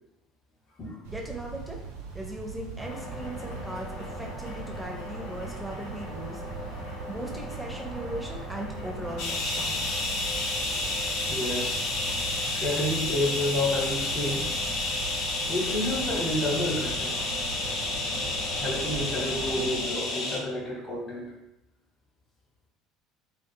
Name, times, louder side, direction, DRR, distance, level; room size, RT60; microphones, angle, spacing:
sound 1, 1.0-19.8, right 6 dB, 70° right, 0.4 m, -41 dB
voice 1, 1.1-1.8 2.1-6.7 7.1-9.9, right 1 dB, 5° right, -1 dB, 0.5 m, -38 dB
sound 2, 2.8-19.7, left 1 dB, 85° left, 1.1 m, -40 dB
sound 3, 9.2-20.4, left 2 dB, 60° left, 0.5 m, -30 dB
voice 2, 11.3-11.8 12.4-14.5 15.5-17.2 18.6-21.3, left 1 dB, 35° left, -3 dB, 1.0 m, -30 dB
2.4 x 2.3 x 2.6 m, 0.89 s
figure-of-eight pair, 60°, 0 cm